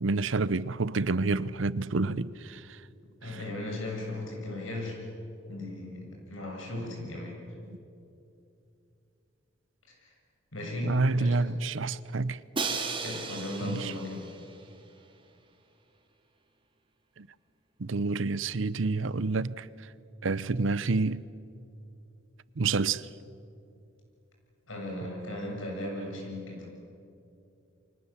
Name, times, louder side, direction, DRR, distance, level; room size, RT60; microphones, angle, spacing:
voice 1, 0.0-2.8 3.2-3.4 10.8-12.4 13.6-13.9 17.2-17.3 17.8-19.7 20.2-21.2 22.6-23.1, right 3 dB, 75° right, 0.7 m, -28 dB
voice 2, 3.2-5.0 5.5-7.4 9.9-10.1 10.5-11.4 13.0-14.2 24.7-26.7, left 1 dB, 85° left, 7.5 m, -37 dB
Crash cymbal, 12.5-14.6, right 4 dB, 25° right, 2.3 m, -35 dB
29.0 x 24.5 x 7.4 m
head